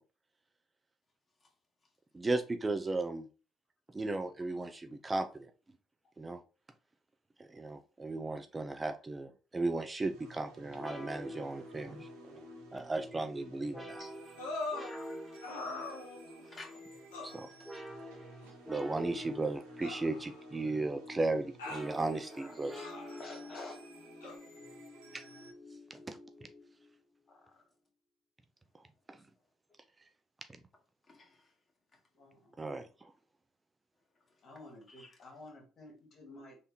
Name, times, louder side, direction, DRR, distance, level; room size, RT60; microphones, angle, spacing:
voice 1, 2.1-3.3 3.9-5.5 6.2-6.4 7.4-12.5 12.7-14.0 17.2-17.5 18.7-22.9 24.2-24.3 25.9-26.2 29.1-29.2 32.6-32.9, right 2 dB, 25° right, 0.4 m, -35 dB
sound 1, 10.0-25.5, right 3 dB, 85° right, 0.8 m, -56 dB
sound 2, 10.8-27.0, left 1 dB, ahead, 1.3 m, -48 dB
sound 3, 14.4-14.9 15.4-16.4 17.1-17.4 18.4-18.5 19.8-20.7 21.6-21.9 22.8-23.2 24.2-24.4, left 3 dB, 90° left, 0.9 m, -41 dB
voice 2, 14.7-15.3 16.4-16.8 31.0-31.5 31.9-32.0 34.3-34.4 34.9-35.2, left 2 dB, 35° left, 1.8 m, -53 dB
voice 3, 23.2-23.8 27.3-27.4 32.1-32.6 34.4-36.6, left 2 dB, 50° left, 1.8 m, -51 dB
3.4 x 2.9 x 3.4 m
hypercardioid pair, 55°, 0 cm